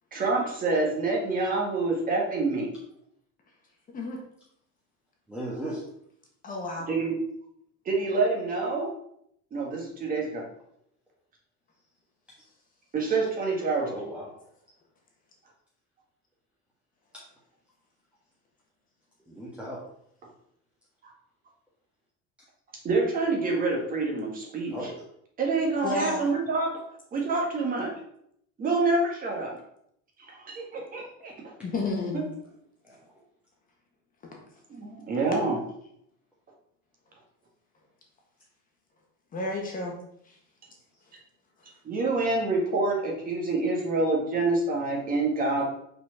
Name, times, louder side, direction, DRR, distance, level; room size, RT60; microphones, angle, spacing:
voice 1, 0.1-2.7 6.9-7.2 7.8-8.9 9.5-10.4 12.9-14.0 22.8-24.7 25.4-26.8 27.1-27.9 28.6-29.6 30.3-31.3 34.7-35.6 41.8-45.6, right 3 dB, 30° right, -1 dB, 1.6 m, -27 dB
voice 2, 5.3-5.8 13.8-14.3 17.1-17.2 19.3-19.8 24.7-24.9 32.8-33.0 45.6-45.7, right 1 dB, 5° right, -6 dB, 1.3 m, -36 dB
voice 3, 6.4-6.9 25.8-26.2 31.6-32.3 39.3-39.9 40.3-40.4, left 2 dB, 30° left, 0 dB, 1.6 m, -31 dB
5.7 x 4.5 x 5.8 m, 0.72 s
cardioid pair, 170°, 29 cm